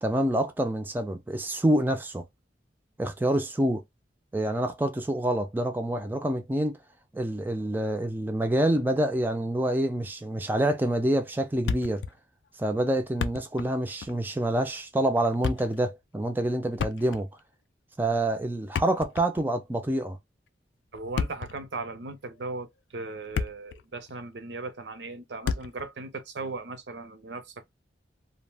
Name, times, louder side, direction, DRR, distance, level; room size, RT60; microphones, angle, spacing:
voice 1, 0.0-2.2 3.0-3.8 4.3-6.8 7.1-12.0 12.6-17.3 18.0-20.2, right 1 dB, 10° right, 0.3 m, -27 dB
Thump thud, 11.7-12.2 12.4-12.5 13.0-13.7 14.0-14.2 15.2-15.8 16.7-17.4 18.6-19.5 20.9-21.6 22.3-22.5 23.0-23.8 24.1-24.2 25.4-25.9, left 6 dB, 75° left, 0.3 m, -32 dB
voice 2, 20.9-27.7, right 3 dB, 75° right, 0.6 m, -37 dB
2.5 x 2.0 x 3.3 m
head